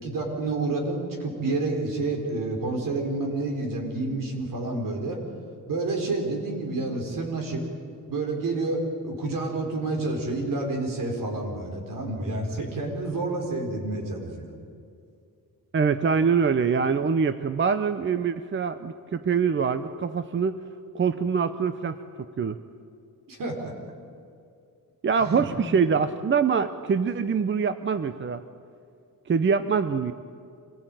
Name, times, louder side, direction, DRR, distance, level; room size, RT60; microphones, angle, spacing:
voice 1, 0.0-5.2 5.7-7.6 8.1-14.5 23.3-23.7 25.2-25.5, right 2 dB, 70° right, 2 dB, 4.9 m, -29 dB
voice 2, 15.7-20.6 20.9-22.0 22.4-22.6 25.0-28.4 29.3-30.1, right 6 dB, 35° right, 11 dB, 0.7 m, -24 dB
25.5 x 18.5 x 9.1 m, 2.5 s
wide cardioid pair, 150°, 34 cm